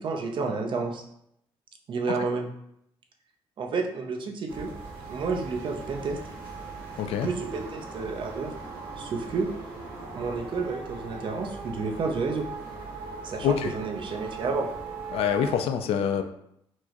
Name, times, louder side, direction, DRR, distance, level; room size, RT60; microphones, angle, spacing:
voice 1, 0.0-1.0 1.9-2.5 3.6-4.7 5.1-6.2 7.2-8.5 9.0-9.5 10.2-12.5 13.2-14.7, right 4 dB, 55° right, 3 dB, 0.6 m, -30 dB
sound 1, 4.5-15.6, right 4 dB, 85° right, 1.0 m, -40 dB
voice 2, 7.0-7.3 13.4-13.7 15.1-16.2, left 8 dB, 75° left, 7 dB, 0.4 m, -25 dB
4.5 x 2.1 x 2.9 m, 0.75 s
cardioid pair, 85°, 10 cm